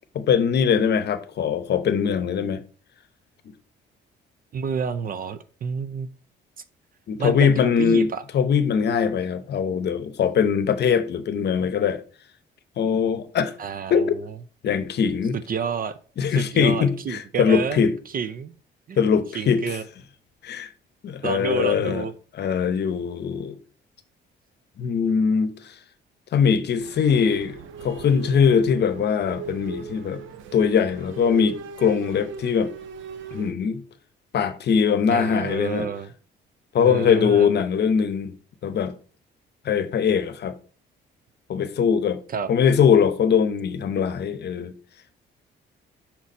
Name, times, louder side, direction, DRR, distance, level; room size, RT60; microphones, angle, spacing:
voice 1, 0.1-2.6 7.1-12.0 12.8-13.5 13.9-14.1 14.6-15.4 16.2-17.9 19.0-19.8 20.4-20.7 21.0-22.1 22.3-23.6 24.8-25.8 26.3-30.2 30.5-32.7 33.3-33.8 34.3-35.9 36.7-38.3 38.6-38.9 39.6-40.6 41.5-42.2 42.5-44.7, left 7 dB, 55° left, 0.8 m, -21 dB
voice 2, 4.5-6.1 7.2-8.2 13.6-14.1 15.3-16.0 16.3-17.8 18.1-18.5 18.9-19.0 19.3-19.8 21.2-22.1 35.1-36.1 36.8-37.5 42.3-42.5, right 7 dB, 45° right, 0.5 m, -29 dB
sound 1, 26.8-33.5, right 5 dB, 80° right, 0.7 m, -39 dB
5.9 x 4.1 x 4.1 m
cardioid pair, 90°, 20 cm